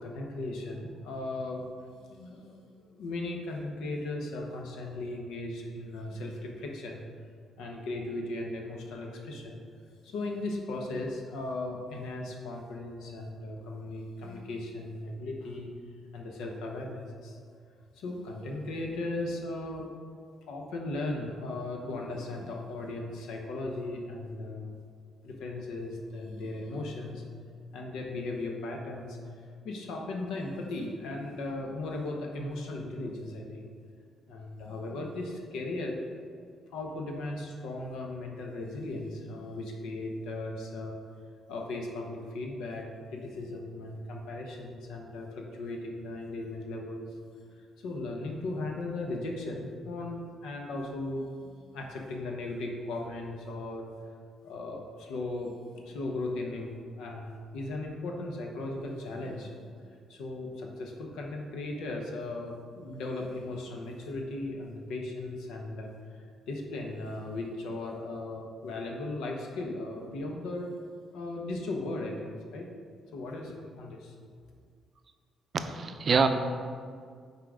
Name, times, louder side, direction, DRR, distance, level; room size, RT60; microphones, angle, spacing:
voice 1, 0.0-1.7 2.0-7.0 7.6-9.6 9.9-15.7 16.1-17.4 17.9-19.9 20.5-24.7 25.2-27.2 27.7-29.2 29.6-33.7 34.3-36.0 36.7-41.0 41.5-42.9 43.1-47.1 47.6-53.9 54.4-59.6 60.1-65.9 66.5-72.7 73.1-74.1, left 2 dB, 85° left, 1 dB, 0.8 m, -37 dB
voice 2, 75.5-76.3, right 5 dB, 45° right, 8 dB, 0.5 m, -25 dB
5.7 x 3.8 x 4.8 m, 2.1 s
cardioid pair, 90°, 0 cm